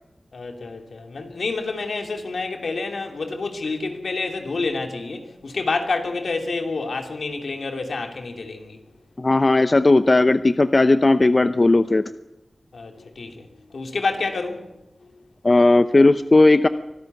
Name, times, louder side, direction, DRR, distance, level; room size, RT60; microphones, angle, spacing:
voice 1, 0.3-8.8 12.7-14.7, left 3 dB, 80° left, 5 dB, 2.9 m, -28 dB
voice 2, 9.2-12.0 15.4-16.7, left 2 dB, 40° left, 11 dB, 0.7 m, -16 dB
24.5 x 12.5 x 9.3 m, 0.93 s
wide cardioid pair, 65°, 0 cm